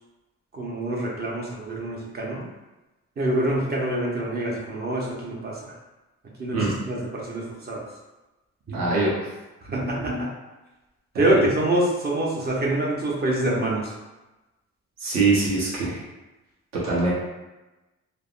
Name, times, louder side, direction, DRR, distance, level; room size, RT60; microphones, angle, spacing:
voice 1, 0.5-2.5 3.2-5.7 6.4-7.8 8.7-8.9 9.7-10.3 11.1-13.9, right 1 dB, 35° right, -2 dB, 0.8 m, -26 dB
voice 2, 8.7-9.1 11.1-11.5 15.0-16.0 16.8-17.1, right 3 dB, 60° right, -6 dB, 1.1 m, -23 dB
3.3 x 2.1 x 2.5 m, 1.1 s
cardioid pair, 90°, 30 cm